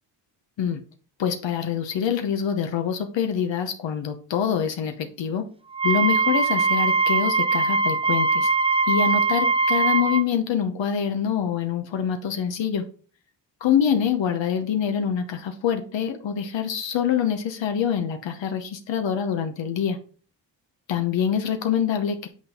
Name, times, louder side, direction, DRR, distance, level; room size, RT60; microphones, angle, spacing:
voice 1, 1.2-5.4 5.8-8.5 8.9-12.8 13.6-20.0 20.9-22.3, left 8 dB, 75° left, 6 dB, 0.9 m, -25 dB
Wind instrument woodwind instrument, 5.7-10.2, right 4 dB, 15° right, 0.6 m, -21 dB
8.5 x 4.1 x 3.6 m, 0.40 s
cardioid pair, 75°, 44 cm